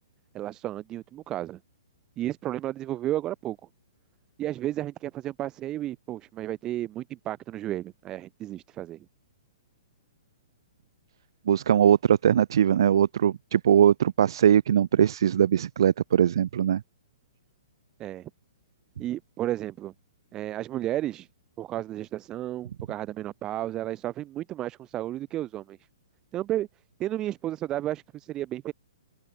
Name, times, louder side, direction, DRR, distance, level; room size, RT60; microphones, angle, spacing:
voice 1, 0.3-1.6 2.2-3.6 4.4-9.0 18.0-18.3 19.0-19.9 20.3-21.3 21.6-25.8 26.3-26.7 27.0-28.7, right 13 dB, 25° right, 2.1 m, -32 dB
voice 2, 11.5-16.8, right 9 dB, 65° right, 1.0 m, -21 dB
open air
hypercardioid pair, 125°, 3 cm